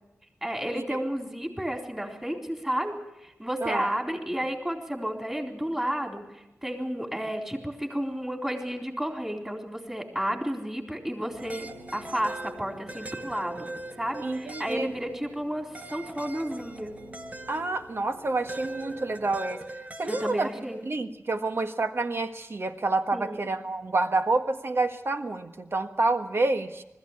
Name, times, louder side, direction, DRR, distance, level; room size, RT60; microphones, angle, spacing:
voice 1, 0.4-2.9 3.2-13.7 14.0-16.9 20.0-20.8 23.1-23.4, equal, 10° right, 2 dB, 3.9 m, -32 dB
sound 1, 11.3-19.3, right 1 dB, 85° right, 6.3 m, -49 dB
sound 2, 11.4-15.3 15.7-17.8 18.5-20.6, right 2 dB, 30° right, 1.4 m, -41 dB
voice 2, 14.2-14.9 17.5-19.6 20.0-20.5 20.9-26.8, right 3 dB, 55° right, 7 dB, 1.5 m, -28 dB
20.5 x 14.5 x 9.9 m, 0.95 s
wide cardioid pair, 85°, 5 cm